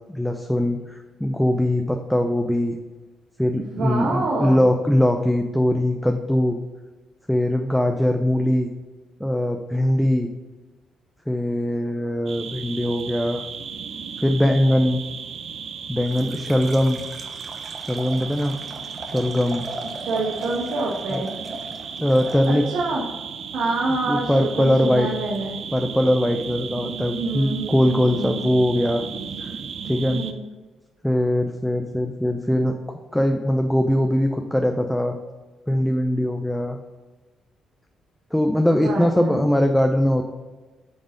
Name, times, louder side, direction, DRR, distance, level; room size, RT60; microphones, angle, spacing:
voice 1, 0.1-2.8 3.4-6.6 7.3-8.7 9.2-10.3 11.3-13.4 14.2-15.0 15.9-17.0 17.9-18.6 19.1-19.7 21.1-21.2 22.0-22.7 24.1-25.1 25.7-29.0 29.4-29.5 29.8-30.2 31.0-35.2 35.7-36.8 38.3-40.2, left 1 dB, 5° left, 4 dB, 0.6 m, -21 dB
voice 2, 3.5-4.6 19.9-21.3 22.4-23.0 23.5-25.6 26.8-28.6 30.1-30.4 38.7-39.4, right 3 dB, 80° right, -3 dB, 1.4 m, -27 dB
sound 1, 12.3-30.3, right 6 dB, 60° right, 0.6 m, -35 dB
Liquid, 16.0-22.8, right 1 dB, 35° right, 1.1 m, -38 dB
8.8 x 3.9 x 5.2 m, 1.3 s
cardioid pair, 90°, 0 cm